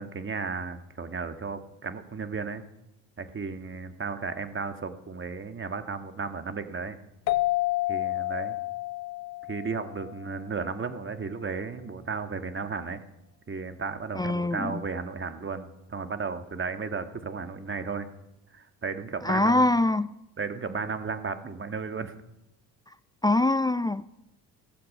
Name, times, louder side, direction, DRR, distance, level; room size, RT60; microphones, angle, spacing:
voice 1, 0.0-2.6 3.2-7.0 7.9-8.6 9.5-13.0 13.5-18.1 18.5-19.7 20.4-22.1, right 5 dB, 25° right, 1.7 m, -34 dB
sound 1, 7.3-10.6, left 18 dB, 90° left, 0.7 m, -30 dB
voice 2, 14.2-14.8 19.2-20.1 23.2-24.0, left 2 dB, 10° left, 0.4 m, -23 dB
16.0 x 14.5 x 5.5 m
hypercardioid pair, 60°, 49 cm